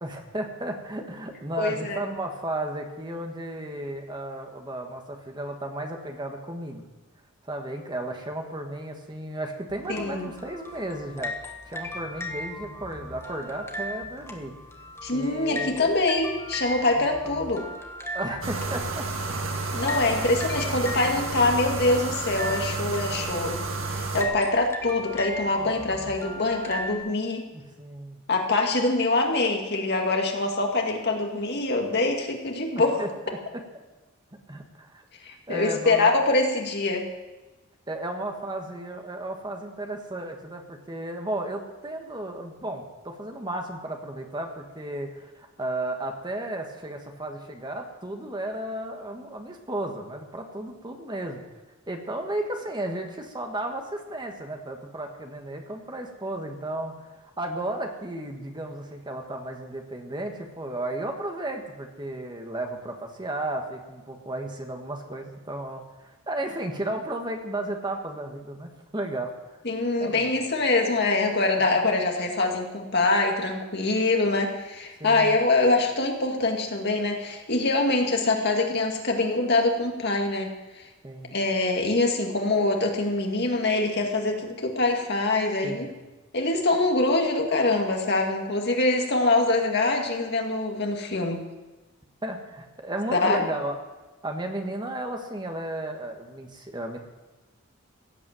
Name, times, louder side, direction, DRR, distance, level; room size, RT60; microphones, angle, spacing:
voice 1, 0.0-6.9 7.4-11.3 11.7-14.5 15.1-15.9 18.1-19.4 20.2-20.4 27.5-28.2 32.8-33.4 34.5-35.0 35.5-36.1 37.9-51.4 51.9-69.3 70.0-70.3 75.0-75.4 81.0-81.3 85.6-85.9 92.2-93.8 94.2-97.0, right 1 dB, 20° right, 3 dB, 1.5 m, -34 dB
voice 2, 1.6-2.0 9.9-10.3 15.0-17.7 19.7-23.6 23.9-27.4 28.3-33.0 35.2-37.1 69.6-80.5 80.8-80.9 81.3-85.9 86.3-91.4 93.1-93.5, left 2 dB, 55° left, 2 dB, 2.2 m, -24 dB
sound 1, 9.7-27.0, left 1 dB, 15° left, 1.4 m, -38 dB
sound 2, 18.4-24.2, right 3 dB, 70° right, 1.8 m, -31 dB
16.5 x 8.5 x 7.6 m, 1.1 s
head